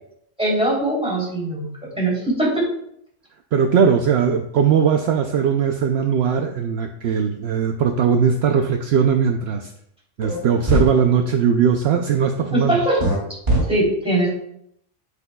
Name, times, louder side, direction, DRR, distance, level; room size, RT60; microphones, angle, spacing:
voice 1, 0.4-1.7 2.0-2.6 12.5-13.0 13.7-14.3, right 1 dB, 5° right, -5 dB, 3.0 m, -21 dB
voice 2, 3.5-9.7 10.2-12.8, right 7 dB, 65° right, 5 dB, 0.8 m, -19 dB
sound 1, 10.2-10.4 10.7-10.9 13.0-13.2 13.5-13.6, right 1 dB, 40° right, 2.7 m, -19 dB
10.0 x 7.9 x 2.3 m, 0.73 s
omnidirectional pair, 1.3 m